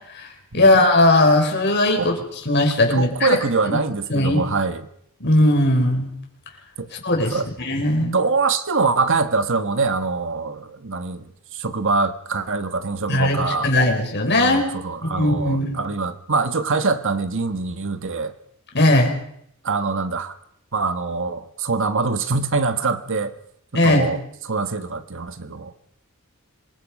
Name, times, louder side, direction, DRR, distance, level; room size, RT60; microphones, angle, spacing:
voice 1, 0.5-2.2 2.5-3.4 3.7-3.8 4.1-4.4 5.2-6.1 6.9-8.1 13.1-14.6 15.0-15.8 18.7-19.1 23.7-24.1, left 1 dB, 50° left, 2 dB, 5.8 m, -18 dB
voice 2, 2.9-4.9 6.8-6.9 7.3-7.5 8.0-13.7 14.4-18.3 19.6-20.4 20.7-23.3 23.7-24.2 24.4-25.7, right 4 dB, 60° right, 9 dB, 1.4 m, -24 dB
26.5 x 23.5 x 5.4 m, 0.72 s
head